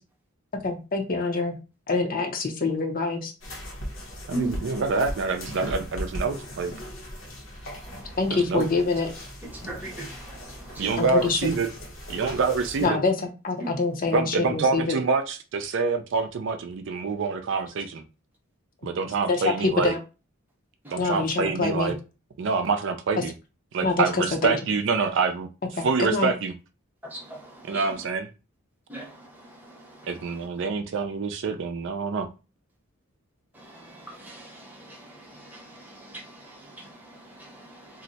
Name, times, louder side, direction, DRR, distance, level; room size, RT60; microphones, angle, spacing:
voice 1, 0.6-1.6 1.9-3.3 8.2-9.1 11.0-11.4 12.8-15.0 19.3-20.0 21.0-21.9 23.2-23.3 23.8-24.6 25.8-26.3, left 3 dB, 45° left, 0.6 m, -25 dB
sound 1, 3.4-12.9, equal, 65° left, 0.9 m, -38 dB
voice 2, 4.3-4.8 7.8-8.4 9.4-11.0 13.6-13.8 20.8-21.2 27.0-28.1 28.9-30.6 33.5-38.0, right 2 dB, 10° right, 0.8 m, -40 dB
voice 3, 4.8-6.7 8.3-8.7 10.8-11.7 12.1-13.0 14.1-18.0 18.8-19.9 20.9-21.9 22.4-23.3 23.7-25.5 25.8-26.5 27.7-28.3 30.1-32.3, right 4 dB, 60° right, 0.4 m, -26 dB
2.6 x 2.1 x 3.9 m
head